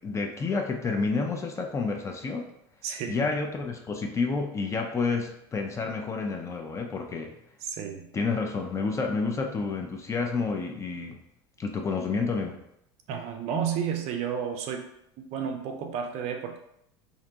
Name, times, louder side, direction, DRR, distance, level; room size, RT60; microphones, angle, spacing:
voice 1, 0.0-2.5 3.1-7.3 8.1-11.2 11.6-12.6, left 4 dB, 20° left, 3 dB, 0.4 m, -29 dB
voice 2, 2.8-3.3 7.6-8.1 13.1-14.9 15.2-16.6, right 7 dB, 50° right, 5 dB, 0.4 m, -32 dB
2.5 x 2.1 x 2.7 m, 0.77 s
hypercardioid pair, 80°, 14 cm